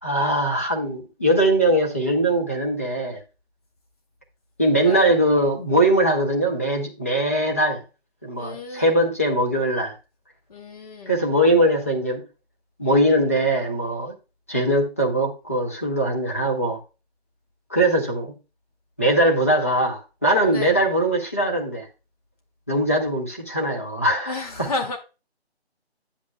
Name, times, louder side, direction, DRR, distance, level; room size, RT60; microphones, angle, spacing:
voice 1, 0.0-3.2 4.6-7.8 8.2-10.0 11.1-12.2 12.8-14.1 14.5-16.8 17.7-18.3 19.0-21.9 22.7-24.7, right 1 dB, 15° left, 0.7 m, -21 dB
voice 2, 8.4-9.0 10.5-11.2 20.5-20.7 24.3-25.0, left 3 dB, 35° left, 2.1 m, -32 dB
9.9 x 8.3 x 2.2 m
figure-of-eight pair, 165°, 33 cm